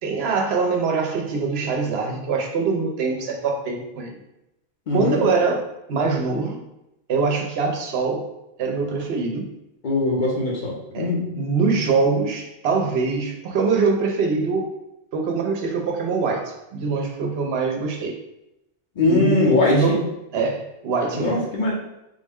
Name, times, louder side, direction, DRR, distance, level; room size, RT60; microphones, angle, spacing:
voice 1, 0.0-4.2 4.9-6.6 7.1-8.3 8.6-9.5 10.9-14.7 15.1-18.1 19.1-20.0 20.3-21.4, right 4 dB, 70° right, 1 dB, 0.8 m, -23 dB
voice 2, 4.9-5.2 9.8-11.3 19.0-20.0 21.1-21.7, left 2 dB, 50° left, -3 dB, 0.8 m, -21 dB
3.6 x 2.1 x 3.5 m, 0.88 s
omnidirectional pair, 1.1 m